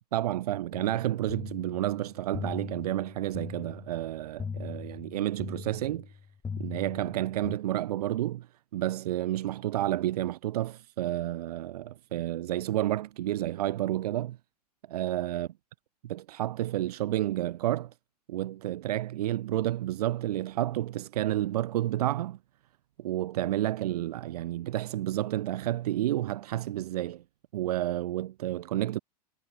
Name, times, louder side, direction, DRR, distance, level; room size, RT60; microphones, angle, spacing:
voice 1, 0.0-6.2 6.6-14.4 14.9-15.5 16.0-17.9 18.3-22.4 23.0-27.2 27.5-29.0, right 14 dB, 70° right, 1.4 m, -30 dB
sound 1, 0.7-7.6, left 6 dB, 15° left, 2.4 m, -40 dB
hypercardioid pair, 110°, 21 cm